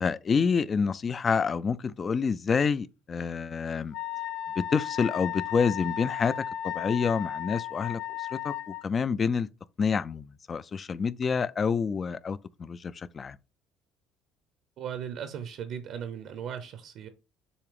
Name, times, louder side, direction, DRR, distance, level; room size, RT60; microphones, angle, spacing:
voice 1, 0.0-3.9 4.6-6.3 6.6-8.0 8.3-8.5 8.8-9.5 9.8-13.4, left 5 dB, 25° left, 0.4 m, -28 dB
Wind instrument woodwind instrument, 3.9-8.8, left 11 dB, 90° left, 0.7 m, -35 dB
voice 2, 14.8-17.1, right 8 dB, 55° right, 0.8 m, -37 dB
7.0 x 2.9 x 5.0 m
cardioid pair, 150°, 0 cm